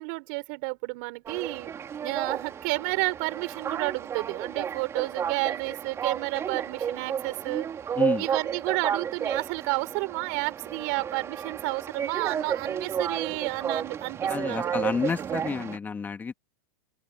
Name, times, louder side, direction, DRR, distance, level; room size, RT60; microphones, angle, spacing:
voice 1, 0.0-1.7 2.0-7.7 8.2-14.7, right 32 dB, 55° right, 4.9 m, -31 dB
sound 1, 1.3-15.8, right 8 dB, 25° right, 5.2 m, -32 dB
voice 2, 8.0-8.3 14.3-16.3, left 5 dB, 15° left, 2.6 m, -30 dB
open air
hypercardioid pair, 115°, 11 cm